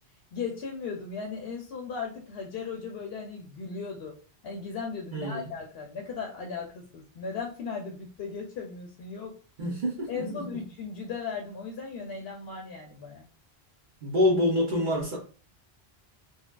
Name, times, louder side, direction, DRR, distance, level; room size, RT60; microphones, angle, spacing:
voice 1, 0.3-4.2 4.4-9.3 10.1-13.3, left 5 dB, 75° left, 1 dB, 0.9 m, -37 dB
voice 2, 5.1-5.5 9.6-10.6 14.0-15.2, left 1 dB, 55° right, -3 dB, 0.9 m, -27 dB
4.0 x 2.1 x 2.3 m, 0.36 s
omnidirectional pair, 1.0 m